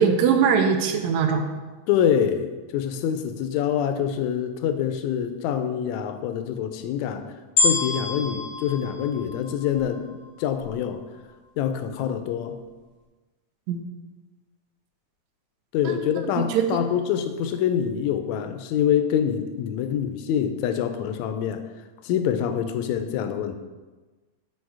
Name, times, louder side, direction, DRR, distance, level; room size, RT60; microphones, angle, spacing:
voice 1, 0.0-1.4 13.7-13.8 15.8-16.0 16.4-16.8, right 6 dB, 85° right, 6 dB, 1.9 m, -21 dB
voice 2, 1.9-7.3 7.6-10.1 10.4-11.0 11.6-12.6 15.7-21.6 22.0-23.5, left 9 dB, 80° left, 8 dB, 1.8 m, -25 dB
sound 1, 7.6-10.0 10.6-10.7, left 3 dB, 35° left, 1.0 m, -26 dB
6.4 x 4.8 x 4.7 m, 1.3 s
omnidirectional pair, 3.3 m